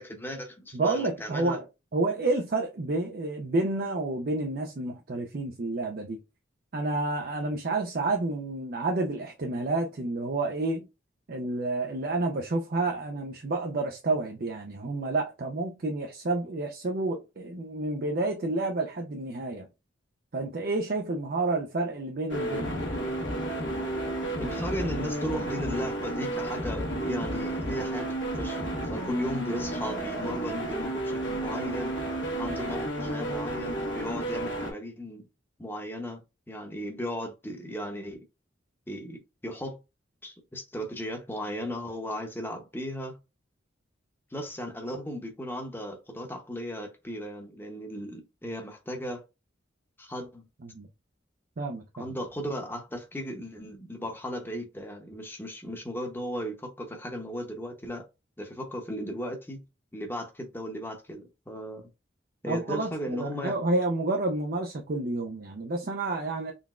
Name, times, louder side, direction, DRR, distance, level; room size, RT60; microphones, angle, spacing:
voice 1, 0.0-1.6 24.4-32.0 32.4-35.3 35.6-38.2 38.9-39.8 40.2-43.2 44.3-49.2 50.0-50.5 51.9-58.0 58.4-59.6 59.9-61.9 62.4-63.5, equal, 10° left, 0.8 m, -36 dB
voice 2, 0.7-1.6 1.9-6.2 6.7-10.9 11.3-19.7 20.3-22.9 50.7-50.9 51.6-52.1 62.4-62.9 63.2-66.5, right 2 dB, 50° right, 0.5 m, -29 dB
sound 1, 22.3-34.7, right 1 dB, 70° left, 1.3 m, -32 dB
3.9 x 3.4 x 2.4 m
head